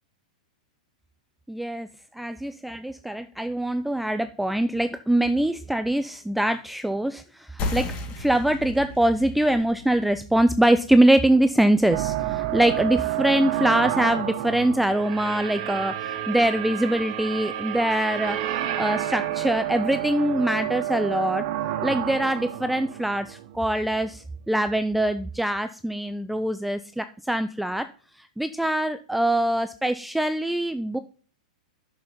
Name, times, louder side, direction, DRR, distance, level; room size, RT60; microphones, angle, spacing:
voice 1, 1.5-1.9 2.1-21.4 21.8-27.9 28.2-31.0, right 1 dB, ahead, 11 dB, 0.3 m, -23 dB
sound 1, 7.6-12.7, left 3 dB, 35° left, 2.3 m, -36 dB
sound 2, 11.9-24.0, right 12 dB, 50° right, 1.0 m, -30 dB
7.6 x 6.8 x 5.5 m, 0.42 s
hypercardioid pair, 125°, 4 cm